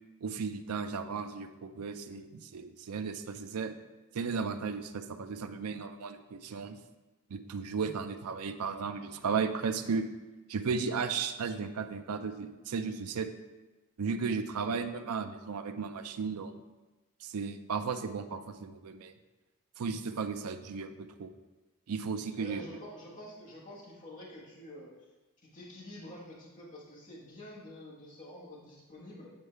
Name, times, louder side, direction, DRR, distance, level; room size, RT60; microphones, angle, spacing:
voice 1, 0.2-3.7 4.1-6.8 7.3-10.1 10.5-13.3 14.0-16.6 17.2-19.1 19.8-21.3 21.9-22.6, right 5 dB, 80° right, 9 dB, 0.5 m, -35 dB
voice 2, 22.3-25.1 25.4-29.3, left 1 dB, 35° left, -6 dB, 1.4 m, -48 dB
8.0 x 4.5 x 3.3 m, 1.1 s
head